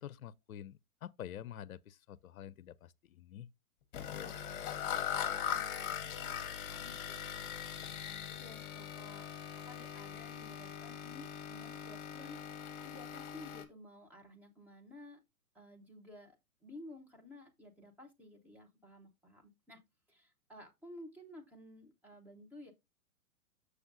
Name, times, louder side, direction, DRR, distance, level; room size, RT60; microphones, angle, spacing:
voice 1, 0.0-3.5, left 10 dB, 70° left, 0.5 m, -48 dB
sound 1, 3.9-13.6, left 9 dB, 35° left, 1.0 m, -41 dB
voice 2, 5.2-7.4 8.0-9.3 9.6-12.4 12.8-15.2 15.5-16.4 16.6-19.8 20.1-22.7, left 1 dB, 5° right, 0.7 m, -54 dB
6.9 x 6.4 x 2.5 m
figure-of-eight pair, 115°, 43 cm